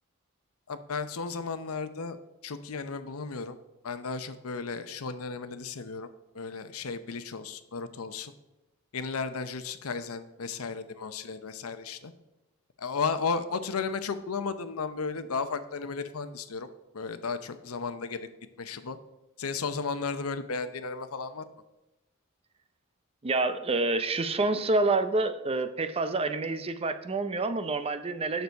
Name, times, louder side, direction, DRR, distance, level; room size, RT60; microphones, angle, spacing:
voice 1, 0.7-2.2 2.4-3.6 3.8-6.1 6.3-8.3 8.9-12.1 12.8-18.2 18.6-19.0 19.4-21.5, left 4 dB, 85° left, 11 dB, 0.7 m, -34 dB
voice 2, 23.2-28.4, right 3 dB, 25° right, 10 dB, 0.5 m, -28 dB
9.3 x 6.8 x 4.5 m, 0.98 s
head